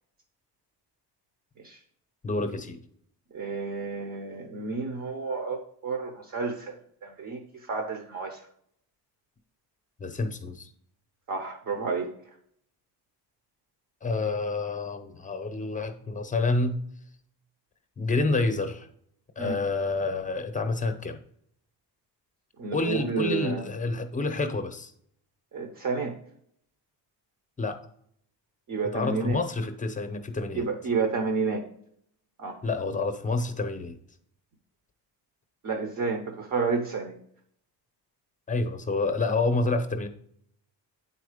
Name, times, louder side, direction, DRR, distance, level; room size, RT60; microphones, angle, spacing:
voice 1, 2.2-2.8 10.0-10.7 14.0-16.8 18.0-18.9 19.4-21.2 22.7-24.9 27.6-27.8 28.9-30.7 32.6-34.0 38.5-40.1, left 3 dB, 20° left, 7 dB, 0.7 m, -28 dB
voice 2, 3.3-7.4 7.7-8.4 11.3-12.1 19.4-19.6 22.6-23.6 25.5-26.2 28.7-29.4 30.5-31.6 32.4-32.6 35.6-37.1, right 4 dB, 45° right, 5 dB, 0.9 m, -30 dB
9.0 x 4.3 x 5.0 m, 0.66 s
cardioid pair, 165°, 42 cm